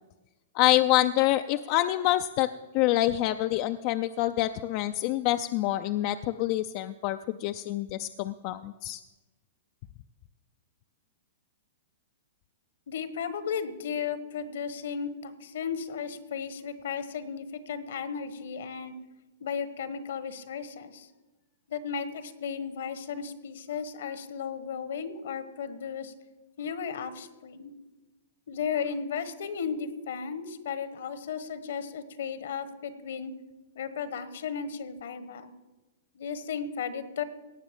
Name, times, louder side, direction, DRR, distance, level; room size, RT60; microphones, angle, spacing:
voice 1, 0.5-2.5 2.7-9.0, left 15 dB, 45° left, 8 dB, 0.4 m, -26 dB
voice 2, 12.9-18.9 19.4-21.1 21.7-26.1 26.6-27.7 28.5-33.3 33.7-35.5 36.1-37.2, left 6 dB, 75° left, 12 dB, 1.2 m, -35 dB
17.5 x 6.1 x 7.4 m, 1.1 s
hypercardioid pair, 130°, 0 cm